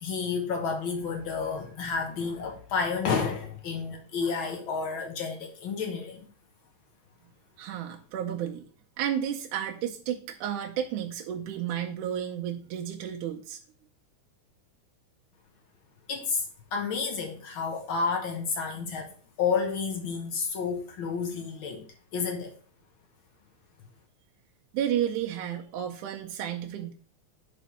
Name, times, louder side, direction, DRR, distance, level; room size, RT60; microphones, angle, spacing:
voice 1, 0.0-6.3 16.1-16.5 16.7-19.1 19.4-21.8 22.1-22.5, left 5 dB, 60° left, 3 dB, 1.3 m, -30 dB
voice 2, 7.6-8.7 9.0-13.6 24.7-26.9, right 10 dB, 90° right, 1 dB, 2.2 m, -32 dB
5.2 x 5.1 x 5.5 m, 0.42 s
omnidirectional pair, 3.4 m